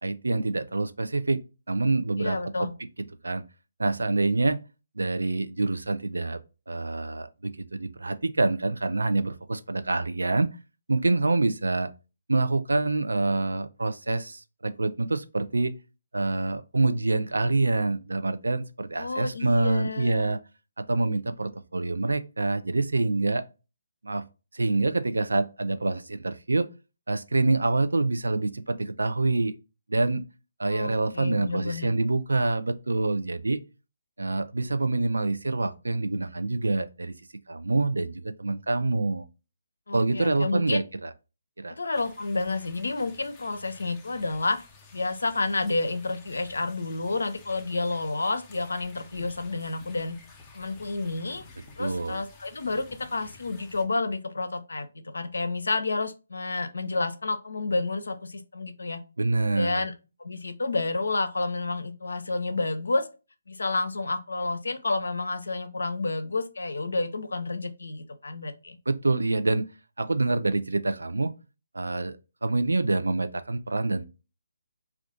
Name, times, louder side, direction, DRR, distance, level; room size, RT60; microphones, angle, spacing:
voice 1, 0.0-1.4 1.7-2.7 3.2-3.4 3.8-4.6 5.0-6.4 6.7-10.5 10.9-11.9 12.3-15.7 16.1-20.4 20.8-23.4 24.0-24.2 24.5-26.7 27.1-29.6 29.9-30.2 30.6-33.6 34.2-37.1 37.5-39.3 39.9-41.1 41.6-41.8 51.8-52.2 59.2-59.8 68.9-69.6 70.0-71.3 71.7-74.1, right 2 dB, 80° right, 0.4 m, -26 dB
voice 2, 2.2-2.7 19.0-20.2 30.7-31.9 39.9-40.8 41.7-44.6 44.9-50.2 50.5-51.4 51.8-59.0 59.5-59.9 60.2-63.1 63.5-68.8, left 3 dB, 75° left, 0.5 m, -30 dB
sound 1, 41.9-53.8, left 4 dB, 15° left, 0.6 m, -52 dB
2.5 x 2.3 x 3.6 m
figure-of-eight pair, 145°, 0 cm